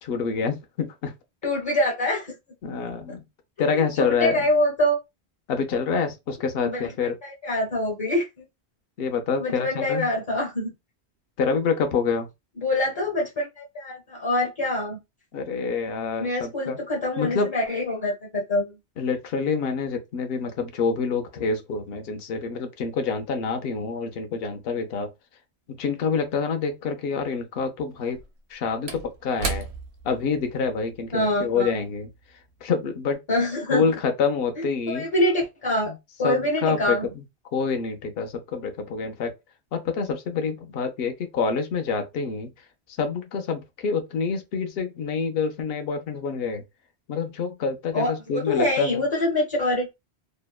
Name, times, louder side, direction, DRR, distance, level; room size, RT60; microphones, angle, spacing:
voice 1, 0.0-1.1 2.6-3.2 3.6-4.5 5.5-7.1 9.0-10.1 11.4-12.3 15.3-16.8 17.2-17.5 19.0-25.1 25.7-28.2 28.5-29.7 30.0-32.1 32.6-33.2 33.7-35.1 35.9-36.0 36.2-37.2 37.5-39.3 39.7-42.5 43.0-46.6 47.1-49.0, left 5 dB, 65° left, 0.8 m, -27 dB
voice 2, 1.4-2.3 3.6-5.0 6.6-8.3 9.4-10.7 12.6-15.0 16.2-18.7 31.1-31.7 33.3-33.8 34.6-35.9 36.2-37.1 47.9-49.9, left 1 dB, 30° left, 0.7 m, -25 dB
Slam / Wood, 26.4-26.5 28.0-32.7 33.0-33.2, right 4 dB, 75° right, 0.9 m, -37 dB
2.8 x 2.1 x 2.3 m
omnidirectional pair, 1.1 m